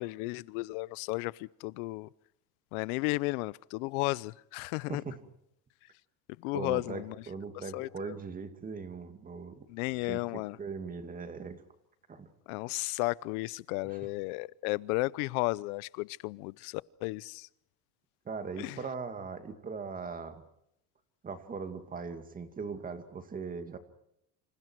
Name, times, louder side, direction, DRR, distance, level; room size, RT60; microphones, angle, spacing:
voice 1, 0.0-2.1 2.7-5.0 6.4-7.2 7.7-8.1 9.7-10.6 12.5-17.5 18.6-18.8, left 23 dB, 85° left, 0.8 m, -34 dB
voice 2, 6.5-9.7 10.1-11.6 12.1-12.3 13.8-14.0 18.3-20.4 21.2-23.8, right 5 dB, 20° right, 2.3 m, -40 dB
29.0 x 27.0 x 4.7 m
cardioid pair, 160°, 43 cm